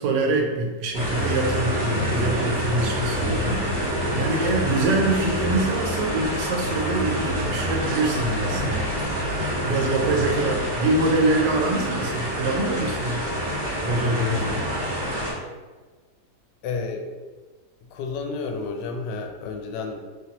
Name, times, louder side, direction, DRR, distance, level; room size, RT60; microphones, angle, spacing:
voice 1, 0.0-8.8 9.6-13.3 13.8-14.7, right 2 dB, 90° right, 1 dB, 1.3 m, -25 dB
sound 1, 0.9-15.3, equal, 30° right, 0.4 m, -27 dB
voice 2, 16.6-17.1 17.9-20.0, left 4 dB, 85° left, 3 dB, 1.2 m, -31 dB
3.3 x 3.0 x 2.9 m, 1.3 s
omnidirectional pair, 1.8 m